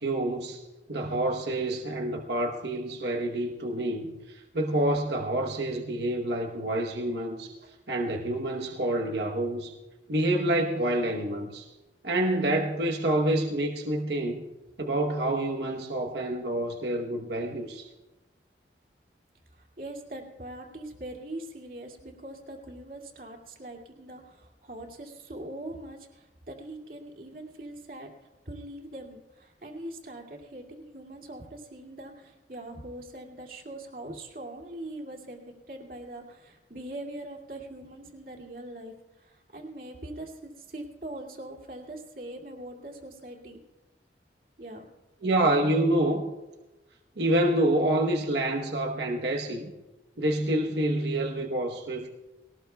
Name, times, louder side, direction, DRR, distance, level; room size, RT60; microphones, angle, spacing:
voice 1, 0.0-0.6 0.9-7.5 7.9-9.7 10.1-11.7 12.0-14.4 14.8-17.9 45.2-46.2 47.2-49.7 50.2-52.1, right 1 dB, 70° right, 2 dB, 1.1 m, -27 dB
voice 2, 19.5-28.1 28.5-43.6 44.6-44.9, right 1 dB, 55° right, 0 dB, 2.4 m, -42 dB
21.0 x 18.0 x 2.3 m, 1.1 s
head